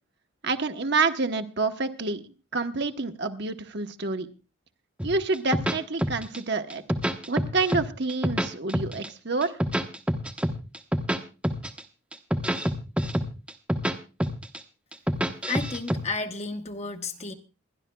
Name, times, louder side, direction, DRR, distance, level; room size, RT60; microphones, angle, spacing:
voice 1, 0.4-2.2 2.5-4.3 5.0-6.8 7.3-9.6, right 3 dB, 55° right, 6 dB, 1.1 m, -28 dB
sound 1, 5.0-6.4 6.7-7.8 8.1-9.1 9.4-11.2 11.4-11.8 12.1-13.9 14.2-14.6 14.9-16.0, equal, 5° right, 1.0 m, -26 dB
voice 2, 15.5-17.3, left 3 dB, 30° left, 6 dB, 1.1 m, -32 dB
28.0 x 11.5 x 2.3 m, 0.33 s
head